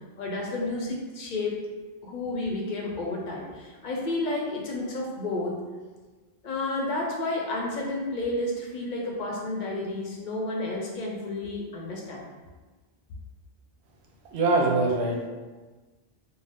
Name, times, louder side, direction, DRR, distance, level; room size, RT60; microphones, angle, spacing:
voice 1, 0.2-1.6 2.0-5.6 6.4-12.2, left 2 dB, 55° left, -2 dB, 0.6 m, -31 dB
voice 2, 14.3-15.3, right 2 dB, 85° right, -1 dB, 0.9 m, -23 dB
2.5 x 2.1 x 3.4 m, 1.3 s
omnidirectional pair, 1.1 m